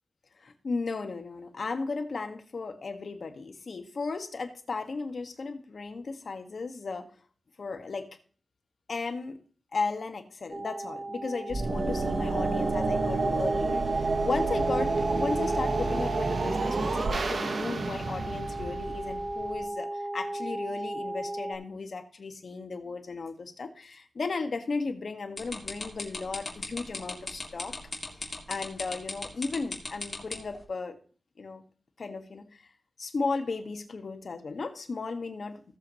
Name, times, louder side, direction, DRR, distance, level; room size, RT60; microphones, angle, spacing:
voice 1, 0.4-7.1 7.6-8.1 8.9-9.4 9.7-27.7 28.2-31.0 31.4-31.6 32.0-32.7 33.0-35.6, left 4 dB, 65° left, 6 dB, 1.7 m, -35 dB
sound 1, 10.5-21.6, right 1 dB, 25° right, 3.0 m, -36 dB
sound 2, 11.5-19.6, right 3 dB, 65° right, 1.7 m, -29 dB
sound 3, 25.4-30.6, left 3 dB, 40° left, 3.4 m, -36 dB
17.0 x 7.4 x 3.2 m, 0.43 s
wide cardioid pair, 75°, 0 cm